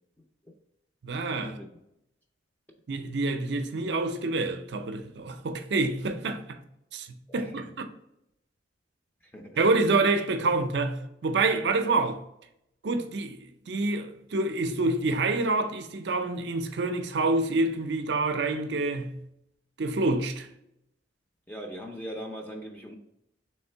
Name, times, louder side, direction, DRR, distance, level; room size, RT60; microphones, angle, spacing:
voice 1, 1.0-1.6 2.9-6.6 6.9-7.9 9.6-12.2 12.8-19.2 19.8-20.5, right 3 dB, 60° right, 0.5 m, -27 dB
voice 2, 7.3-7.7 9.3-9.6 21.5-22.9, equal, 10° left, 0.5 m, -40 dB
3.6 x 3.2 x 4.4 m
head